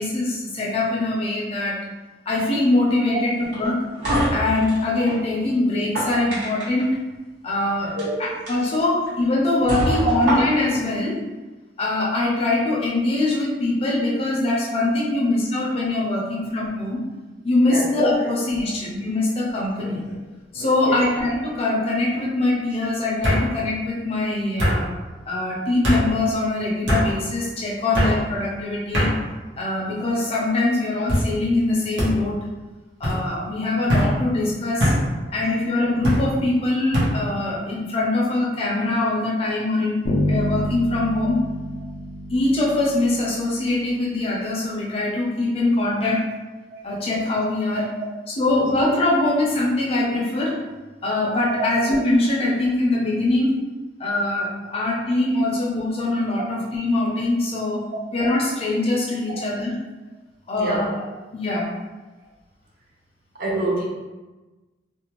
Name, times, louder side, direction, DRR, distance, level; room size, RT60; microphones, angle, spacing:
voice 1, 0.0-1.8 2.3-3.8 4.3-7.0 7.4-8.0 8.5-11.2 11.8-17.0 17.4-20.0 20.5-24.9 25.3-29.1 29.6-32.4 33.0-34.9 35.3-41.4 42.3-46.2 46.8-47.8 48.3-50.6 51.0-53.6 54.0-59.8 60.5-60.9 61.3-61.7, left 2 dB, 30° left, -4 dB, 0.5 m, -23 dB
sound 1, 3.5-5.2 5.7-6.8 7.8-8.0 8.5-8.6 9.1-9.2 9.7-10.8, equal, 65° right, 1.1 m, -25 dB
sound 2, 19.8-20.2 20.5-21.1 22.2-22.3 23.2-23.4 24.6-24.8 25.8-26.0 26.9-27.1 27.9-28.2 28.9-29.1 29.9-30.3 31.1-31.3 32.0-32.1 33.0-33.2 33.9-34.1 34.8-35.0 36.0-36.2 36.9-37.1, equal, 85° right, 0.9 m, -21 dB
Bass guitar, 40.0-43.8, left 1 dB, 85° left, 0.5 m, -28 dB
voice 2, 60.6-60.9 63.4-63.8, right 2 dB, 50° right, -4 dB, 0.6 m, -25 dB
2.5 x 2.2 x 2.9 m, 1.2 s
head